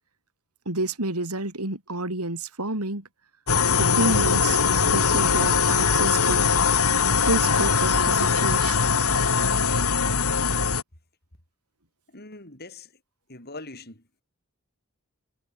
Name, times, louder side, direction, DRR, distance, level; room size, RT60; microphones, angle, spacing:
voice 1, 0.6-3.0 3.8-6.5 7.2-8.9, right 2 dB, 85° right, 5.1 m, -29 dB
sound 1, 3.5-10.8, left 5 dB, 75° left, 3.1 m, -21 dB
voice 2, 12.1-12.9 13.3-14.0, left 2 dB, 45° left, 7.7 m, -42 dB
head